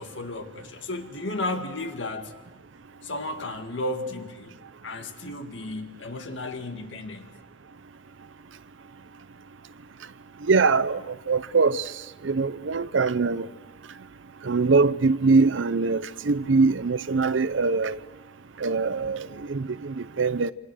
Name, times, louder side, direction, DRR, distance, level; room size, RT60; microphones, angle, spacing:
voice 1, 0.0-2.3 3.0-4.5 4.8-7.3, left 2 dB, 80° left, 2.0 m, -33 dB
voice 2, 10.5-11.8 12.2-13.5 14.4-18.0 18.6-20.5, right 4 dB, 85° right, 0.7 m, -23 dB
27.0 x 26.0 x 6.4 m
head